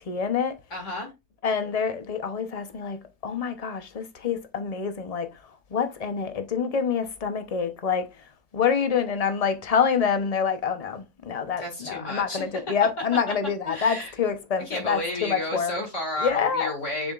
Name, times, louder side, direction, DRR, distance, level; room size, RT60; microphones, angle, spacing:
voice 1, 0.1-0.5 1.4-3.0 3.2-5.3 5.7-8.1 8.5-15.8 16.2-16.7, left 6 dB, 30° left, 0.8 m, -26 dB
voice 2, 0.7-1.1 11.6-12.4 13.6-14.1 14.7-17.1, left 1 dB, 50° left, 2.5 m, -32 dB
6.9 x 6.3 x 2.5 m
omnidirectional pair, 1.6 m